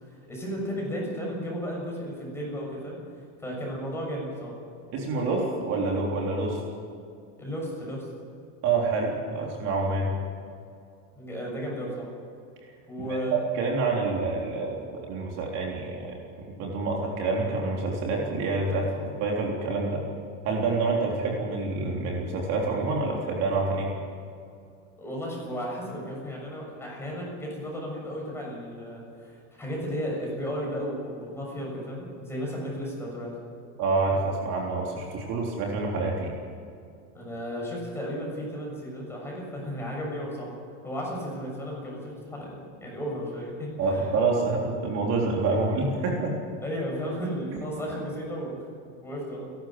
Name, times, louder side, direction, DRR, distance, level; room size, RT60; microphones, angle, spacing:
voice 1, 0.3-3.0 3.4-4.5 7.4-8.1 11.1-12.1 12.9-13.4 18.7-19.0 25.0-29.3 29.6-33.3 37.1-40.5 40.8-43.7 46.6-49.5, equal, 5° left, -3 dB, 7.0 m, -34 dB
voice 2, 4.9-6.6 8.6-10.1 13.3-18.8 19.2-20.0 20.4-23.9 33.8-36.3 43.8-46.4 47.5-47.6, right 3 dB, 45° right, -1 dB, 3.6 m, -27 dB
30.0 x 12.5 x 7.6 m, 2.4 s
supercardioid pair, 155°, 38 cm